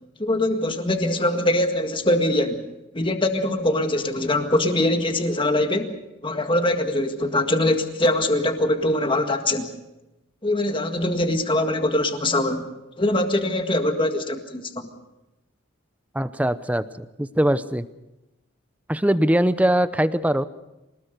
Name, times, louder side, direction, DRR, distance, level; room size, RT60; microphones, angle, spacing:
voice 1, 0.2-2.6 2.9-5.9 6.2-9.7 10.4-12.7 13.0-14.6, left 1 dB, 25° left, 5 dB, 1.8 m, -22 dB
voice 2, 16.1-17.8 18.9-20.4, right 1 dB, 5° right, 13 dB, 0.7 m, -21 dB
25.5 x 19.5 x 6.7 m, 0.97 s
head